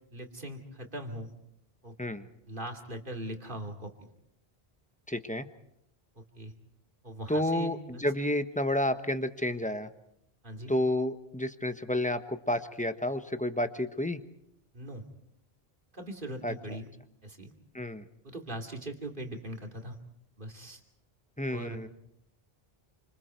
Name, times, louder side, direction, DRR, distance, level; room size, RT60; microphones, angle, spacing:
voice 1, 0.1-1.3 1.8-2.1 2.5-4.1 6.2-6.5 7.0-8.0 10.4-10.7 14.7-15.0 15.9-16.9 17.2-17.5 18.2-20.0 20.4-20.8 21.5-21.8, right 1 dB, 55° right, 3 dB, 3.0 m, -40 dB
voice 2, 5.1-5.5 7.3-9.9 10.7-14.2 16.4-16.5 17.7-18.0 21.4-21.9, left 1 dB, 10° left, 9 dB, 1.1 m, -30 dB
29.0 x 26.5 x 4.6 m, 0.76 s
omnidirectional pair, 1.0 m